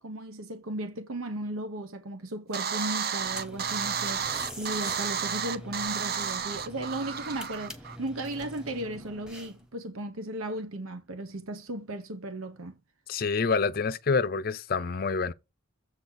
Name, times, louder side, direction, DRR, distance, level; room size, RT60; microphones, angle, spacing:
voice 1, 0.0-12.8, right 1 dB, 80° right, 1.0 m, -36 dB
sound 1, 2.5-8.0, right 7 dB, 45° right, 0.7 m, -32 dB
sound 2, 3.2-9.7, equal, 5° right, 1.2 m, -45 dB
voice 2, 13.1-15.3, left 4 dB, 45° left, 0.5 m, -27 dB
7.6 x 4.0 x 6.2 m
head